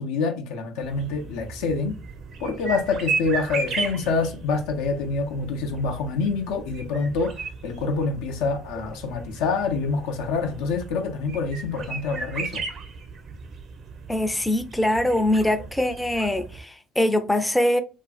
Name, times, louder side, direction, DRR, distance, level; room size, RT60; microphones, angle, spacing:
voice 1, 0.0-2.0 2.4-12.6, left 4 dB, 75° left, 0.4 m, -26 dB
sound 1, 0.8-16.6, right 4 dB, 55° right, 0.6 m, -35 dB
voice 2, 14.1-17.8, left 1 dB, 10° left, 0.4 m, -23 dB
2.5 x 2.4 x 2.3 m
hypercardioid pair, 60°, 0 cm